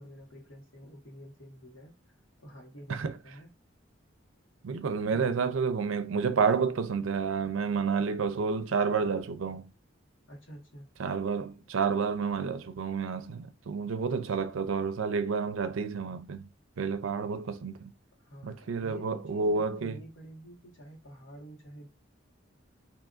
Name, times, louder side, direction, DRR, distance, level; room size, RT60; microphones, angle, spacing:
voice 1, 0.0-2.0 2.4-3.5 10.3-10.9 18.2-21.9, equal, 80° left, 1.3 m, -49 dB
voice 2, 4.6-9.7 11.0-16.4 16.8-17.9 18.4-20.0, right 5 dB, 85° right, 0.4 m, -30 dB
3.8 x 2.6 x 2.4 m
head